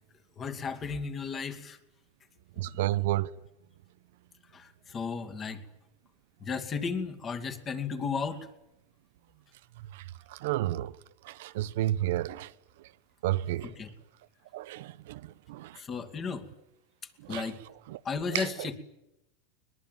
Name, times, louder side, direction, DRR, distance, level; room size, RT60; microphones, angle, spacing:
voice 1, 0.4-1.8 4.5-5.6 6.4-8.5 13.6-13.9 15.8-16.5 17.3-17.6 18.0-18.8, left 5 dB, 25° left, 2.5 m, -34 dB
voice 2, 2.6-3.3 9.9-10.0 10.3-10.9 11.2-12.5 13.2-13.7 14.5-15.2 15.5-15.7 17.3-17.5 17.9-18.0 18.3-18.5, right 15 dB, 70° right, 0.8 m, -31 dB
22.0 x 21.5 x 9.2 m
supercardioid pair, 145°, 0 cm